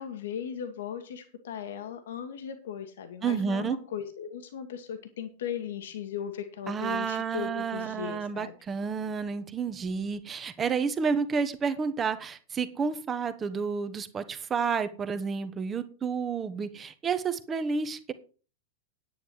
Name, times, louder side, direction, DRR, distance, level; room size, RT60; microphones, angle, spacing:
voice 1, 0.0-8.5, left 8 dB, 60° left, 8 dB, 1.5 m, -37 dB
voice 2, 3.2-3.8 6.7-18.1, right 5 dB, 20° right, 12 dB, 1.2 m, -30 dB
10.0 x 9.4 x 4.6 m, 0.36 s
figure-of-eight pair, 90°, 0 cm